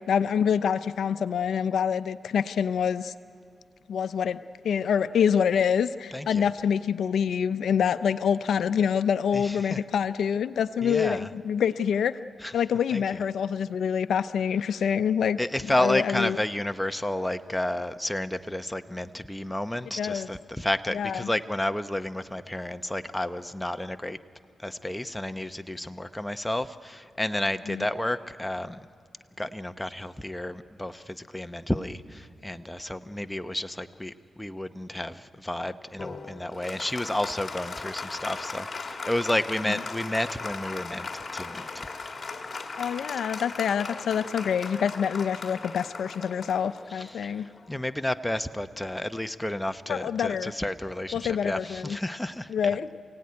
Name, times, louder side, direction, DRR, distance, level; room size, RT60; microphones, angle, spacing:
voice 1, 0.1-3.1 3.9-12.2 12.5-15.4 15.8-16.4 20.0-20.3 20.9-21.3 27.7-27.9 39.7-39.8 42.8-47.5 49.9-50.5 51.1-52.0 52.5-52.9, left 7 dB, 80° left, 13 dB, 0.6 m, -26 dB
voice 2, 6.1-6.4 9.3-9.8 10.8-11.3 12.4-12.5 12.9-13.0 15.4-24.2 24.6-28.9 29.4-41.9 46.9-52.8, left 1 dB, 10° left, 9 dB, 0.9 m, -31 dB
Applause, 36.0-47.9, left 4 dB, 40° left, 2.4 m, -38 dB
27.5 x 17.0 x 9.6 m, 2.3 s
cardioid pair, 70°, 0 cm